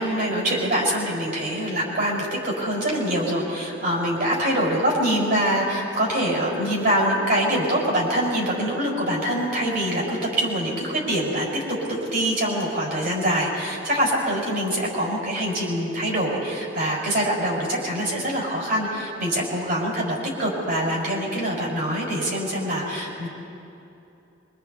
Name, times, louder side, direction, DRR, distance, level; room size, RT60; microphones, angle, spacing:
voice 1, 0.0-23.3, equal, 50° right, -4 dB, 5.9 m, -24 dB
25.5 x 24.5 x 4.2 m, 2.8 s
head